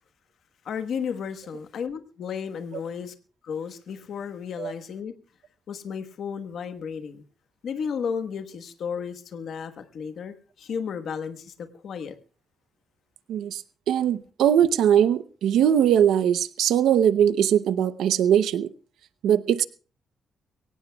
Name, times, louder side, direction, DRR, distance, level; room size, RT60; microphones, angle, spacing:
voice 1, 0.6-3.1 3.4-5.1 5.7-7.2 7.6-12.1, left 6 dB, 60° left, 1.3 m, -33 dB
voice 2, 13.3-18.7 19.2-19.7, right 9 dB, 90° right, 0.7 m, -21 dB
23.5 x 17.5 x 2.3 m
cardioid pair, 135°, 0 cm